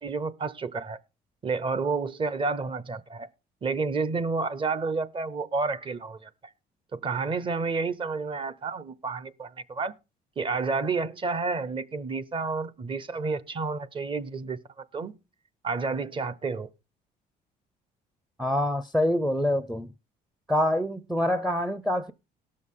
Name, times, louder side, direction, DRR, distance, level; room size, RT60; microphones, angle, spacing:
voice 1, 0.0-1.0 1.4-3.3 3.6-6.3 6.9-9.9 10.4-14.6 14.9-15.1 15.6-16.7, right 4 dB, 30° right, 0.8 m, -30 dB
voice 2, 18.4-19.9 20.5-22.1, left 1 dB, 5° right, 0.5 m, -25 dB
18.5 x 6.4 x 3.7 m
cardioid pair, 110°, 17 cm